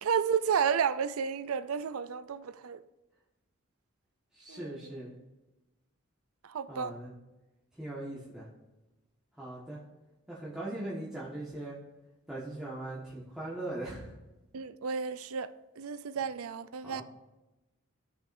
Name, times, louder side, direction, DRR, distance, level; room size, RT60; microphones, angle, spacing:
voice 1, 0.0-2.8 4.5-4.8 6.4-6.9 14.5-17.0, right 7 dB, 85° right, 0.5 m, -32 dB
voice 2, 4.3-5.1 6.7-7.1 7.7-8.5 9.4-9.8 10.3-11.8 12.3-14.1 16.8-17.0, right 1 dB, 5° right, 1.4 m, -40 dB
16.5 x 6.2 x 2.6 m
head